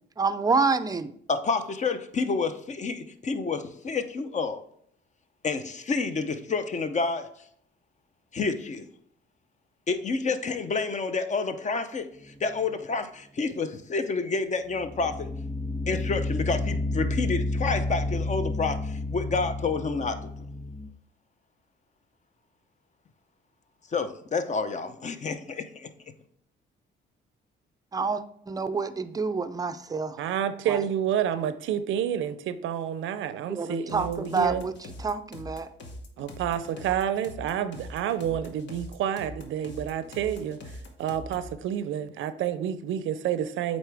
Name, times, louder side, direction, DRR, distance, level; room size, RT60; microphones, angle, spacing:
voice 1, 0.2-1.1 27.9-30.2 30.7-30.8 33.5-34.7 35.0-35.7, right 4 dB, 20° right, 0.4 m, -28 dB
voice 2, 1.3-4.6 5.4-7.3 8.3-8.8 9.9-12.1 12.4-15.3 15.9-20.3 23.9-25.9, left 4 dB, 35° left, 0.6 m, -29 dB
sound 1, 12.3-12.6 14.7-20.9, left 2 dB, 5° left, 1.4 m, -30 dB
voice 3, 30.2-34.6 36.2-40.6 41.0-43.8, right 9 dB, 80° right, 0.5 m, -29 dB
sound 2, 33.9-41.6, left 1 dB, 65° left, 1.1 m, -43 dB
7.9 x 4.0 x 3.4 m
cardioid pair, 90°, 20 cm